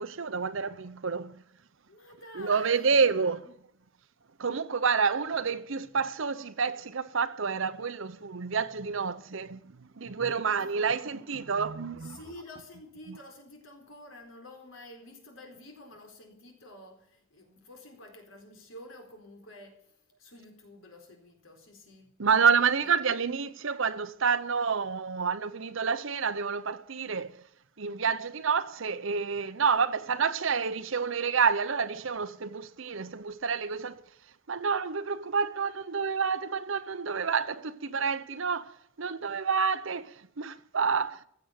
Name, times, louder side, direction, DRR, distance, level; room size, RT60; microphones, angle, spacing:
voice 1, 0.0-1.3 2.4-3.4 4.4-9.6 10.0-12.2 22.2-27.4 27.8-34.0 34.5-38.7 39.0-41.3, right 5 dB, 70° right, 0.8 m, -28 dB
voice 2, 1.9-3.5 10.5-11.2 12.0-19.9 20.2-22.2 22.8-22.9, left 1 dB, 70° left, 4.1 m, -50 dB
15.5 x 7.9 x 8.8 m
head